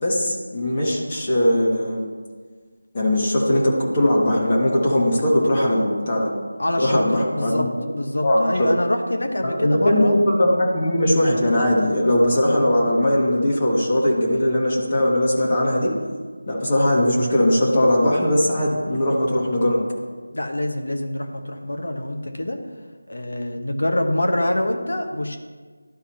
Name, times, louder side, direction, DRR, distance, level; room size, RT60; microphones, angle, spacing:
voice 1, 0.0-2.0 2.9-6.3 6.8-7.7 8.2-8.7 9.4-15.9 16.5-19.8, left 1 dB, 30° left, -4 dB, 1.4 m, -20 dB
voice 2, 6.6-10.1 20.3-22.6 23.1-25.4, left 1 dB, 70° left, 4 dB, 1.3 m, -25 dB
13.0 x 4.8 x 2.9 m, 1.5 s
figure-of-eight pair, 170°, 0 cm